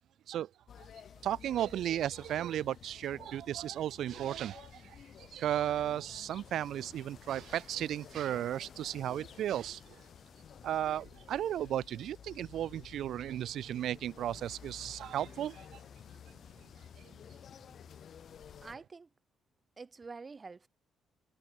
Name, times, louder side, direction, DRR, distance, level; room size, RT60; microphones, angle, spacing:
sound 1, 0.7-18.8, left 8 dB, 55° left, 3.5 m, -53 dB
voice 1, 1.2-10.0 10.6-15.8, right 11 dB, 75° right, 0.4 m, -35 dB
voice 2, 18.6-19.1 19.8-20.7, right 4 dB, 30° right, 6.5 m, -47 dB
cardioid pair, 90°, 0 cm